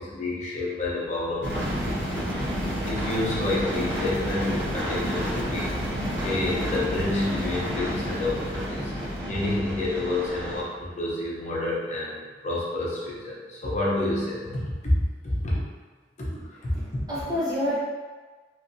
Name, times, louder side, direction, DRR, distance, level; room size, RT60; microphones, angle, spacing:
voice 1, 0.0-2.5 2.9-15.5 16.2-17.0, left 2 dB, 40° left, -5 dB, 0.7 m, -29 dB
sound 1, 1.4-10.6, equal, 75° right, 0.8 m, -30 dB
voice 2, 16.7-17.8, left 1 dB, 25° right, -9 dB, 1.1 m, -29 dB
3.1 x 2.7 x 2.6 m, 1.4 s
head